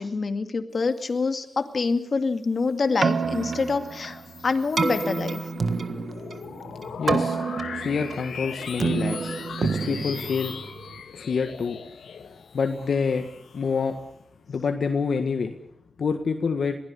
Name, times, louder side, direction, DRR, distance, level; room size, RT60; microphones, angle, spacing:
voice 1, 0.0-5.4, left 4 dB, 55° left, 7 dB, 2.3 m, -26 dB
Keyboard (musical), 2.8-11.0, right 4 dB, 55° right, 1.5 m, -29 dB
sound 1, 3.1-14.0, left 6 dB, 90° left, 2.2 m, -39 dB
voice 2, 7.0-7.4 7.7-9.3 9.6-10.5 11.1-11.8 12.5-13.2 13.5-14.0 14.5-15.6 16.0-16.8, left 5 dB, 70° left, 5 dB, 1.7 m, -27 dB
22.5 x 16.5 x 8.4 m, 0.76 s
cardioid pair, 75°, 0 cm